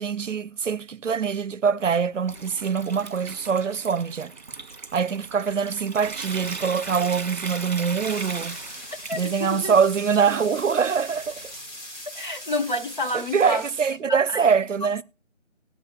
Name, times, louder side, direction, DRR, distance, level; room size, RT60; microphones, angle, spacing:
voice 1, 0.0-4.3 4.9-8.6 9.1-11.5 13.1-15.0, right 6 dB, 75° right, 0.6 m, -24 dB
Water tap faucet / Sink (filling or washing) / Trickle dribble, 1.8-11.7, right 4 dB, 35° right, 1.4 m, -38 dB
sound 1, 8.0-13.9, left 1 dB, 65° left, 4.9 m, -41 dB
voice 2, 9.1-9.7 12.1-14.5, left 1 dB, 40° left, 1.0 m, -30 dB
18.5 x 7.2 x 2.3 m
figure-of-eight pair, 175°, 38 cm